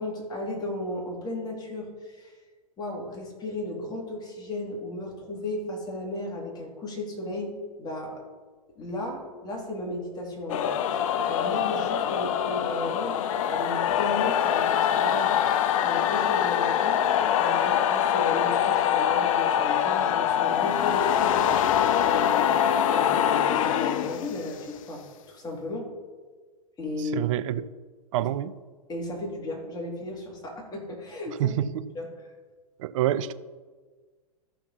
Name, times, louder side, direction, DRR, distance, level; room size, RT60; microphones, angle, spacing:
voice 1, 0.0-2.3 2.8-8.2 8.7-17.0 17.4-22.5 22.9-25.9 26.8-27.3 28.9-31.5 31.9-32.1, left 1 dB, 20° left, -1 dB, 2.7 m, -35 dB
sound 1, 10.5-24.7, left 9 dB, 60° left, 0.6 m, -24 dB
voice 2, 27.0-27.7 28.1-28.5 31.4-31.9 32.8-33.3, right 12 dB, 55° right, 15 dB, 0.5 m, -27 dB
13.5 x 5.8 x 4.2 m, 1.4 s
hypercardioid pair, 110°, 19 cm